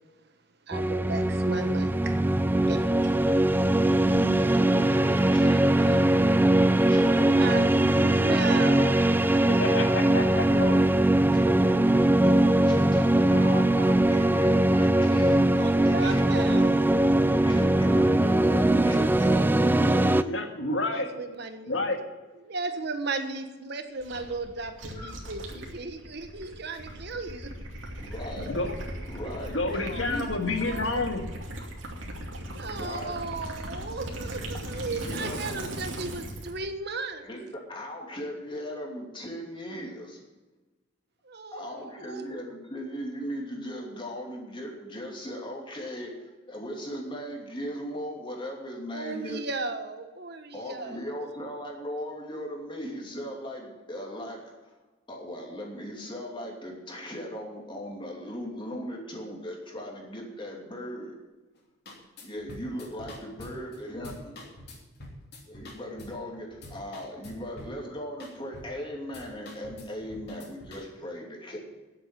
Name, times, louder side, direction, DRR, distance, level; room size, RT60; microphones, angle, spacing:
sound 1, 0.7-20.2, right 1 dB, 10° right, 0.3 m, -21 dB
voice 1, 0.7-2.2 2.6-3.3 7.4-9.0 15.5-17.2 20.9-21.7 22.5-27.5 29.8-31.0 32.5-37.3 41.2-42.3 48.9-51.0, right 3 dB, 60° right, 7 dB, 1.3 m, -35 dB
voice 2, 3.8-6.0 6.9-7.4 8.2-8.9 10.5-10.8 11.3-16.6 17.2-20.4 25.0-25.2 28.0-28.6 29.0-30.2 32.6-33.2 34.9-35.4 37.2-40.2 41.5-49.4 50.5-54.7 55.1-61.1 62.2-64.5 65.5-71.6, equal, 25° left, 0 dB, 2.8 m, -38 dB
voice 3, 9.5-10.5 20.3-21.1 21.7-22.0 28.4-28.7 29.5-31.2, left 2 dB, 75° left, 4 dB, 1.8 m, -29 dB
Gurgling / Liquid, 24.0-36.6, right 1 dB, 80° right, 2.7 m, -38 dB
sound 2, 61.5-61.6 61.9-66.2 66.5-67.8 68.2-68.8 69.1-70.8, left 1 dB, 60° left, 3.1 m, -46 dB
10.5 x 7.9 x 9.1 m, 1.2 s
head